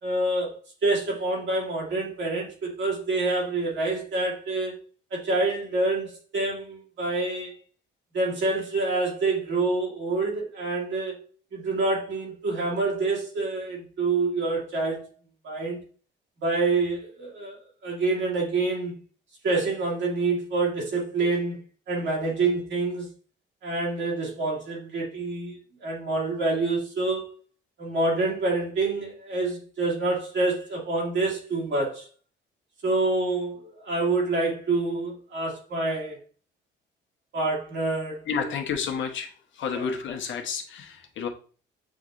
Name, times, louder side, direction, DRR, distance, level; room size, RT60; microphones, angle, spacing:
voice 1, 0.0-4.7 5.1-7.5 8.1-11.2 11.5-15.1 15.4-15.8 16.4-18.9 19.4-21.6 21.9-23.1 23.6-27.3 27.8-32.1 32.8-36.2 37.3-38.5 39.7-39.9, right 3 dB, 70° right, 2.2 m, -27 dB
voice 2, 38.3-39.3 39.6-41.3, left 6 dB, 70° left, 1.0 m, -30 dB
7.5 x 2.8 x 2.5 m
cardioid pair, 90°, 20 cm